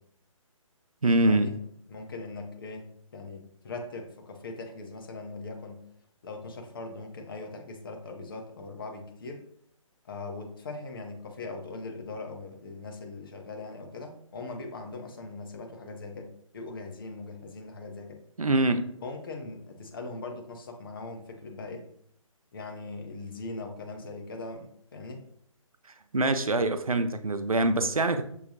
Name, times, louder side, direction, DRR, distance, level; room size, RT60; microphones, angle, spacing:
voice 1, 1.0-1.5 18.4-18.9 26.1-28.2, right 2 dB, 85° right, 10 dB, 0.5 m, -24 dB
voice 2, 1.9-5.8 6.2-9.4 10.0-18.2 19.0-21.9 22.5-25.2, left 3 dB, 40° left, 4 dB, 0.6 m, -40 dB
6.3 x 2.3 x 2.7 m, 0.68 s
figure-of-eight pair, 140°, 18 cm